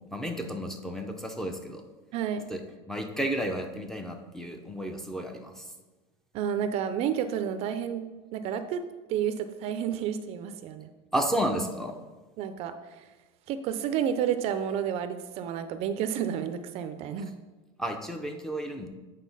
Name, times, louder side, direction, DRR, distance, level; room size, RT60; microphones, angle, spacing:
voice 1, 0.1-1.8 2.5-2.6 2.9-5.6 11.1-12.0 17.8-18.9, right 1 dB, 5° left, 4 dB, 0.6 m, -32 dB
voice 2, 2.1-2.4 6.3-8.8 9.1-10.9 12.4-13.0 13.5-17.3, right 9 dB, 45° right, 10 dB, 0.5 m, -30 dB
8.3 x 3.8 x 5.4 m, 1.2 s
cardioid pair, 150°, 14 cm